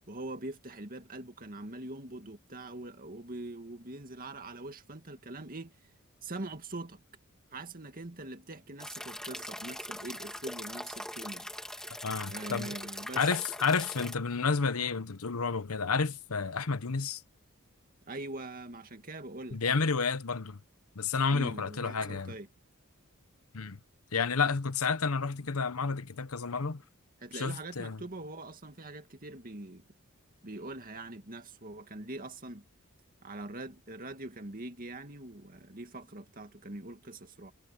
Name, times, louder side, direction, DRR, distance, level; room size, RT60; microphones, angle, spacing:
voice 1, 0.1-5.8 6.2-7.0 7.5-11.5 12.3-13.3 18.1-19.6 21.3-22.5 27.2-29.8 30.4-32.6 33.2-37.5, right 2 dB, 40° right, 2.2 m, -43 dB
sound 1, 8.8-14.2, left 1 dB, 5° left, 2.7 m, -41 dB
voice 2, 12.0-12.7 13.2-17.2 19.5-20.6 20.9-22.4 23.5-23.8 24.1-26.8 27.3-28.0, left 5 dB, 90° left, 1.0 m, -30 dB
head